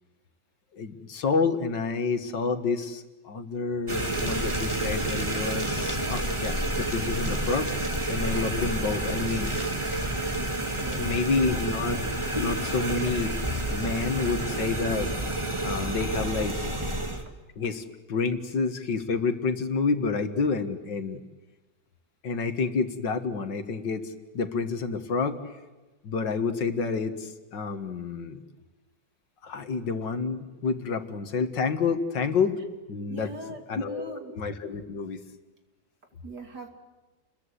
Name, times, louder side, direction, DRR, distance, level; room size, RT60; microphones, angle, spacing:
voice 1, 0.7-7.7 8.1-9.5 11.0-12.0 12.3-13.3 13.7-15.1 15.6-16.6 17.6-21.2 22.2-25.5 26.0-28.4 29.4-32.6 32.9-33.3 33.7-35.2, left 4 dB, 70° left, 8 dB, 2.3 m, -29 dB
sound 1, 3.9-17.2, right 1 dB, 15° right, 2.2 m, -29 dB
voice 2, 10.8-11.1 33.1-34.3 36.2-36.7, right 1 dB, 60° right, 5 dB, 3.4 m, -40 dB
30.0 x 22.0 x 8.3 m, 1.2 s
omnidirectional pair, 2.1 m